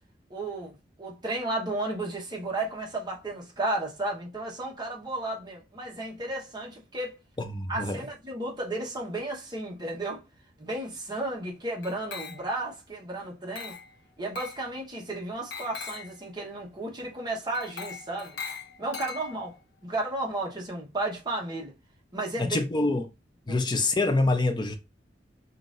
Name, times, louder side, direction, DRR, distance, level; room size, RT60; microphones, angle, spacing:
voice 1, 0.3-7.2 7.7-10.2 10.6-13.7 14.2-18.4 18.8-19.5 19.8-21.7 22.1-22.6 23.5-23.7, right 2 dB, 25° right, 1.1 m, -33 dB
voice 2, 7.4-8.0 22.4-23.1 23.5-24.8, left 2 dB, 25° left, 0.6 m, -26 dB
Glass, 11.8-12.7 13.5-13.9 14.3-14.6 15.5-16.2 17.5-19.6, left 5 dB, 70° left, 1.1 m, -40 dB
5.6 x 2.6 x 2.6 m
head